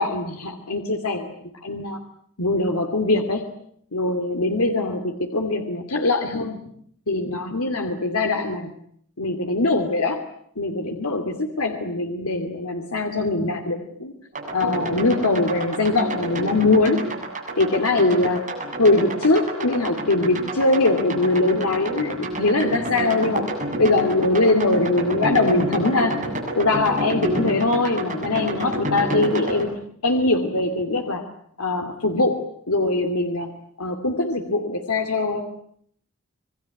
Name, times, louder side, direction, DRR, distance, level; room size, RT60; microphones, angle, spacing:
voice 1, 0.0-1.3 1.6-2.0 2.4-3.4 3.9-6.6 7.1-8.7 9.2-10.2 10.6-14.1 14.5-17.0 17.6-18.5 18.8-23.5 23.8-26.2 26.6-29.8 30.0-31.2 31.6-32.4 32.7-33.5 33.8-35.4, left 2 dB, 90° left, 5 dB, 2.6 m, -22 dB
sound 1, 14.3-29.6, right 1 dB, 35° right, 7.7 m, -29 dB
27.5 x 21.5 x 9.5 m, 0.66 s
head